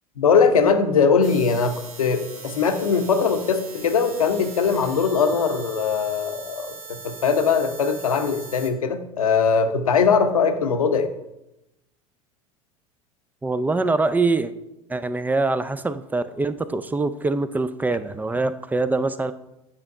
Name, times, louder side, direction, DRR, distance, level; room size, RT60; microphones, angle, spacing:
voice 1, 0.2-11.1, left 5 dB, 75° left, 8 dB, 0.8 m, -21 dB
sound 1, 1.2-8.7, right 4 dB, 75° right, 1.2 m, -40 dB
voice 2, 13.4-14.5 14.9-19.3, right 3 dB, 10° right, 13 dB, 0.4 m, -24 dB
8.8 x 5.1 x 4.7 m, 0.90 s
figure-of-eight pair, 75°, 18 cm